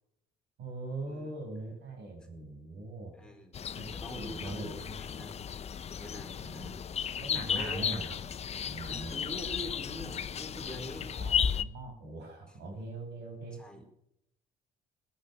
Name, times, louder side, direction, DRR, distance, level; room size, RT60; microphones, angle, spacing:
voice 1, 0.6-3.1 3.8-3.9 4.1-5.2 6.4-6.7 7.2-8.2 8.6-9.2 11.1-13.6, right 2 dB, 80° right, 3 dB, 7.9 m, -41 dB
voice 2, 3.1-3.6 3.9-5.5 6.0-6.7 7.5-7.9 8.9-11.1 12.5-12.6 13.5-13.9, left 1 dB, 5° left, 1 dB, 4.4 m, -44 dB
sound 1, 3.5-11.6, left 7 dB, 40° left, 0.9 m, -34 dB
17.5 x 11.5 x 7.1 m, 0.75 s
cardioid pair, 110°, 17 cm